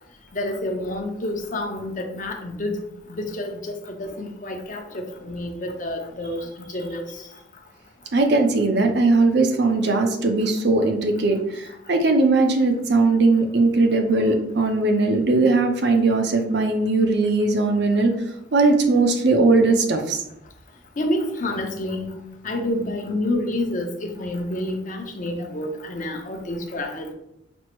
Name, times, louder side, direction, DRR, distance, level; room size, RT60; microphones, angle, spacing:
voice 1, 0.3-2.8 3.1-6.5 6.7-7.1 21.0-22.2 22.4-27.1, left 1 dB, 45° left, 3 dB, 0.6 m, -28 dB
voice 2, 8.1-18.1 18.5-20.2, right 3 dB, 60° right, 4 dB, 0.6 m, -19 dB
6.0 x 2.0 x 3.0 m, 0.81 s
head